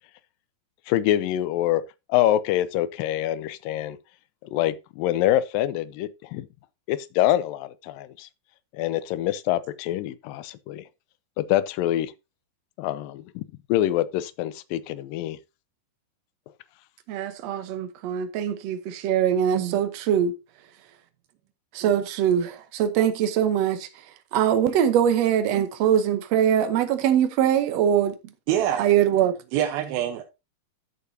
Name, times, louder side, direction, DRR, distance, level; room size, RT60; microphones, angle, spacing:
voice 1, 0.9-1.8 2.1-4.0 4.4-6.5 6.9-8.3 8.7-10.8 11.4-12.1 12.8-13.4 13.7-15.4, left 13 dB, 80° left, 2.3 m, -25 dB
voice 2, 17.1-20.3 21.7-23.9 24.3-28.2 28.8-29.3, right 9 dB, 65° right, 1.7 m, -22 dB
voice 3, 28.5-29.0 29.5-30.2, right 11 dB, 85° right, 2.8 m, -26 dB
13.5 x 6.8 x 2.8 m
omnidirectional pair, 4.2 m